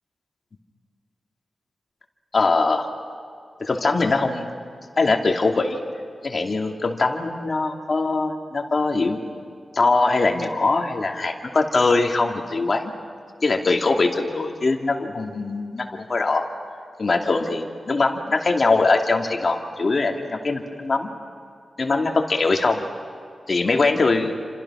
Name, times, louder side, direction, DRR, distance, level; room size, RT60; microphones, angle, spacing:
voice 1, 2.3-2.9 3.6-4.5 5.0-5.8 6.2-9.2 9.7-12.9 13.4-16.5 17.0-21.1 21.8-22.8 23.5-24.3, left 3 dB, 40° left, 2 dB, 2.6 m, -22 dB
29.5 x 26.5 x 6.3 m, 2.3 s
wide cardioid pair, 150°, 0 cm